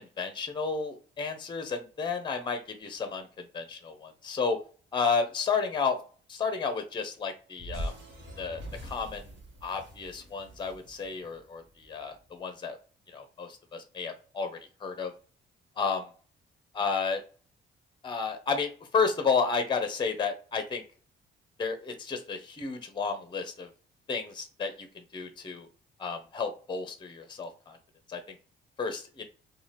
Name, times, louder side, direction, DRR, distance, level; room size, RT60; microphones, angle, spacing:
voice 1, 0.0-4.6 4.9-6.0 6.3-7.9 8.4-9.3 9.6-12.8 13.1-15.1 15.8-16.1 16.7-17.2 18.0-20.8 21.6-23.7 24.1-24.9 25.1-25.7 26.0-27.8 28.1-28.3 28.8-29.2, left 5 dB, 25° left, 7 dB, 0.6 m, -32 dB
sound 1, 7.6-12.0, equal, 65° right, 1.0 m, -42 dB
2.7 x 2.2 x 3.3 m, 0.39 s
cardioid pair, 90°, 20 cm